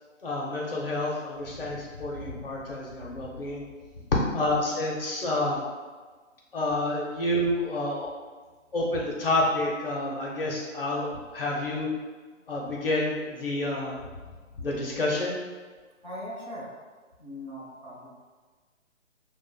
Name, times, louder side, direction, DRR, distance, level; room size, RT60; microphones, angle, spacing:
voice 1, 0.2-3.6 4.3-5.6 6.5-8.1 8.7-11.9 12.5-14.0 14.6-15.4, left 1 dB, 45° left, -3 dB, 0.5 m, -29 dB
voice 2, 4.3-4.6 16.0-16.7 17.2-18.1, left 1 dB, 35° right, -6 dB, 0.8 m, -40 dB
2.4 x 2.0 x 3.7 m, 1.4 s
figure-of-eight pair, 140°, 39 cm